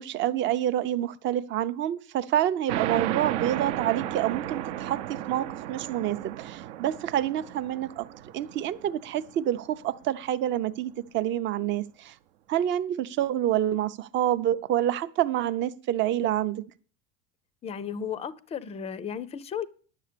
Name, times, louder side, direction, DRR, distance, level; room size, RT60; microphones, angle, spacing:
voice 1, 0.0-5.0 5.3-8.1 8.3-12.1 12.5-16.6, right 11 dB, 35° right, 0.6 m, -27 dB
sound 1, 2.7-9.8, right 12 dB, 70° right, 0.8 m, -34 dB
voice 2, 17.6-19.7, left 7 dB, 20° left, 0.5 m, -34 dB
10.5 x 7.2 x 6.7 m
supercardioid pair, 150°, 36 cm